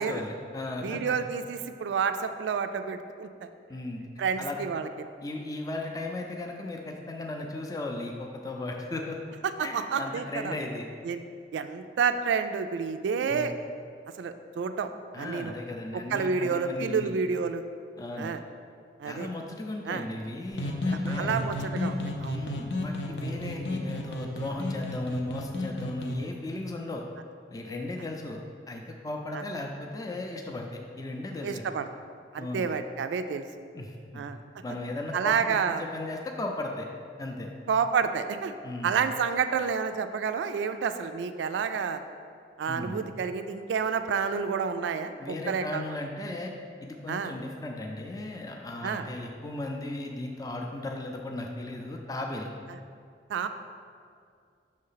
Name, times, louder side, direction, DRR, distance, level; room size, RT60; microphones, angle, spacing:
voice 1, 0.0-1.2 3.7-4.0 4.4-4.6 5.2-9.2 9.6-10.9 13.3-13.6 15.1-17.1 18.0-18.3 19.0-21.4 22.3-27.0 27.5-31.6 32.4-32.6 33.7-34.3 34.6-36.9 37.2-37.5 38.6-39.0 42.7-43.0 45.2-46.5 46.8-52.5, left 2 dB, 20° left, 1 dB, 0.4 m, -36 dB
voice 2, 0.8-3.5 4.2-5.1 9.6-10.5 11.1-11.2 11.5-13.5 14.2-14.9 15.2-15.5 15.9-17.6 18.2-18.4 19.0-19.3 19.9-20.0 21.1-22.4 29.3-29.4 31.4-31.9 32.3-33.5 34.1-34.4 35.1-35.8 37.7-38.5 38.8-42.0 42.6-45.8 47.1-47.3 48.8-49.0 53.3-53.5, right 6 dB, 85° right, 9 dB, 0.3 m, -29 dB
sound 1, 20.5-26.2, left 1 dB, 75° left, 0.7 m, -32 dB
6.5 x 3.2 x 5.6 m, 2.3 s
head